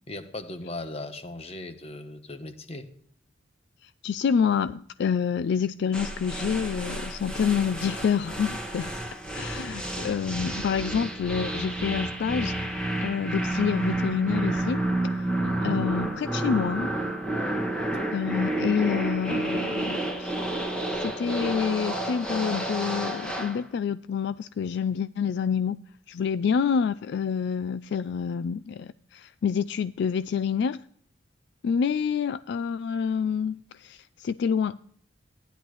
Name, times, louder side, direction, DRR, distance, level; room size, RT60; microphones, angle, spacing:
voice 1, 0.1-2.9 15.4-15.9, left 2 dB, 35° left, 1.0 m, -37 dB
voice 2, 3.8-8.9 9.3-12.6 13.0-14.8 15.6-16.9 18.1-20.3 20.9-25.8 26.1-30.8 31.6-34.8, left 7 dB, 65° left, 0.3 m, -27 dB
sound 1, 5.9-23.6, right 1 dB, 5° left, 1.7 m, -30 dB
15.0 x 10.5 x 3.1 m
head